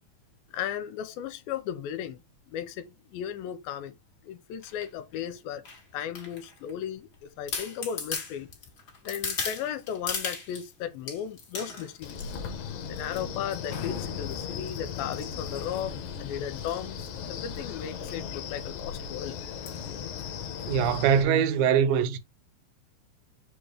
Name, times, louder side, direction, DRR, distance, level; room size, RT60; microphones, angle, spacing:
voice 1, 0.5-4.0 4.2-5.6 5.9-8.5 9.0-12.3 12.9-19.4, left 9 dB, 85° left, 2.4 m, -36 dB
sound 1, 4.6-4.9 5.6-6.7 7.1-7.2 7.5-10.7 11.1-12.5 13.0-13.2 13.5-13.9 14.3-16.1 16.6-16.8 17.1-17.2 17.4-17.6 18.0-18.2 18.5-18.6 19.7-19.9 20.4-20.5, left 5 dB, 40° left, 1.5 m, -37 dB
Wind, 12.0-21.2, left 7 dB, 70° left, 2.1 m, -37 dB
voice 2, 20.7-22.2, right 8 dB, 80° right, 2.5 m, -22 dB
6.8 x 2.9 x 5.0 m
omnidirectional pair, 4.3 m